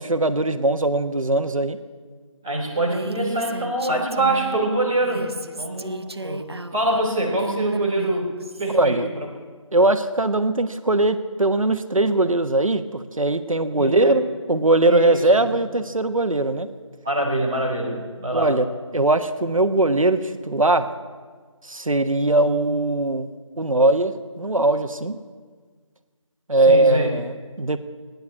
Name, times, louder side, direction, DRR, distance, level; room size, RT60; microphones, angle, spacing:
voice 1, 0.0-1.8 8.7-9.1 9.7-16.7 18.3-18.6 18.9-20.2 20.5-20.9 21.7-23.3 23.6-25.2 26.5-27.8, right 2 dB, 90° right, 10 dB, 1.2 m, -20 dB
voice 2, 2.4-6.4 6.7-8.3 8.6-9.3 13.8-14.2 14.8-15.4 17.0-18.5 26.5-27.1, right 1 dB, 5° right, -9 dB, 1.1 m, -25 dB
Female speech woman speaking, 2.8-4.6 5.0-8.7, right 2 dB, 50° right, 0.7 m, -33 dB
16.0 x 10.5 x 8.5 m, 1.5 s
figure-of-eight pair, 175°, 17 cm